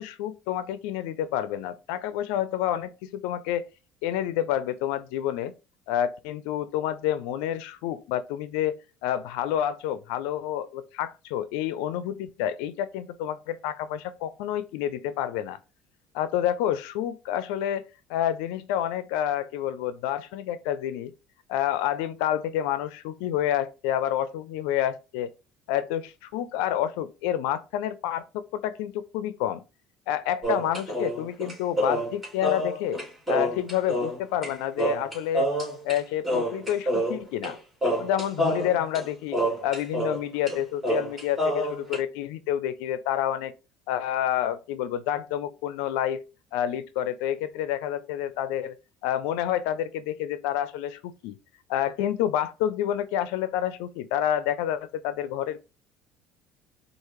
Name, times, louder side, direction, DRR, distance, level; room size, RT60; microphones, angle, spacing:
voice 1, 0.0-3.7 4.0-5.5 5.9-8.7 9.0-15.6 16.1-17.8 18.1-21.1 21.5-25.3 25.7-29.6 30.1-33.0 33.3-35.5 35.8-37.6 38.0-43.5 43.9-46.2 46.5-48.8 49.0-51.4 51.7-55.6, left 11 dB, 85° left, 0.5 m, -28 dB
sound 1, 30.4-34.5 34.8-36.0 36.2-37.5 37.8-40.2 40.5-40.6 40.8-42.0, right 1 dB, 15° right, 2.5 m, -27 dB
4.8 x 2.5 x 3.1 m
supercardioid pair, 105°, 0 cm